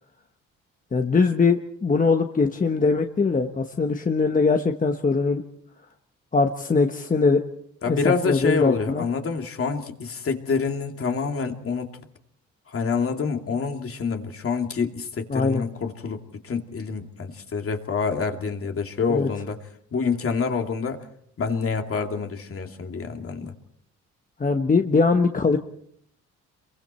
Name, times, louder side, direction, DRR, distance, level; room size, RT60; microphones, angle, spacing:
voice 1, 0.9-5.4 6.3-7.4 7.9-9.0 15.3-15.6 19.1-19.3 24.4-25.6, left 4 dB, 25° left, 5 dB, 1.3 m, -21 dB
voice 2, 7.8-11.9 12.7-19.6 19.9-21.1 21.4-23.5, left 5 dB, 45° left, 4 dB, 2.6 m, -27 dB
28.0 x 23.0 x 4.5 m, 0.68 s
cardioid pair, 90°, 30 cm